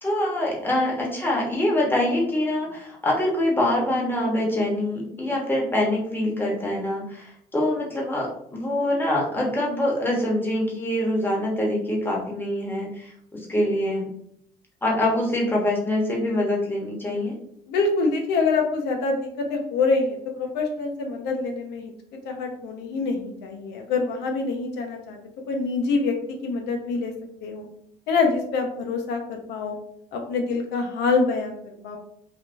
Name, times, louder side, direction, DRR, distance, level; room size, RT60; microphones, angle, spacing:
voice 1, 0.0-14.1 14.8-17.3, left 1 dB, 10° left, -2 dB, 0.9 m, -24 dB
voice 2, 17.7-21.9 22.2-25.2 25.5-27.1 27.4-27.7 28.1-29.8 30.1-32.0, left 4 dB, 85° left, 3 dB, 0.6 m, -25 dB
3.4 x 2.3 x 2.5 m, 0.68 s
cardioid pair, 110°, 17 cm